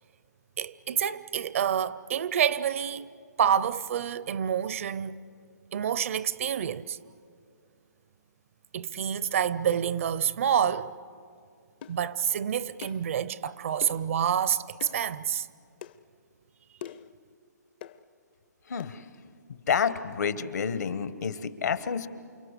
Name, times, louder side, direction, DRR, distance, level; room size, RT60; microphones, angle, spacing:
voice 1, 0.6-3.1 3.4-5.2 5.7-7.0 8.7-10.9 11.9-15.5, right 8 dB, 45° right, 0.6 m, -28 dB
sound 1, 11.8-12.0 12.8-13.1 13.8-14.1 14.8-15.0 15.8-16.0 16.8-17.1 17.8-18.0 18.8-18.9, left 9 dB, 35° left, 0.6 m, -42 dB
voice 2, 18.7-19.0 19.5-22.1, left 6 dB, 65° left, 1.3 m, -29 dB
29.0 x 24.5 x 8.2 m
hypercardioid pair, 155°, 10 cm